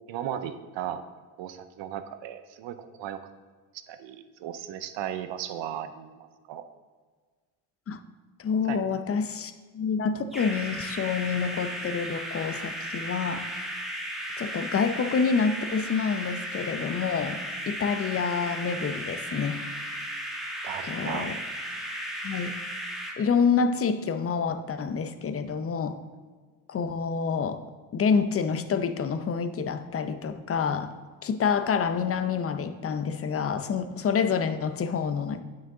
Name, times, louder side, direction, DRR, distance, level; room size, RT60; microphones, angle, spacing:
voice 1, 0.1-1.0 1.4-3.2 3.7-6.6 8.7-8.8 20.6-21.3, right 10 dB, 65° right, 10 dB, 0.8 m, -36 dB
voice 2, 8.4-13.5 14.4-17.4 17.7-20.1 20.9-21.4 22.2-22.6 23.2-26.0 26.7-27.6 27.9-30.9 31.2-35.4, left 6 dB, 30° left, 10 dB, 0.6 m, -27 dB
sound 1, 10.3-23.1, equal, ahead, 1.6 m, -35 dB
8.7 x 6.4 x 3.8 m, 1.5 s
supercardioid pair, 75°, 49 cm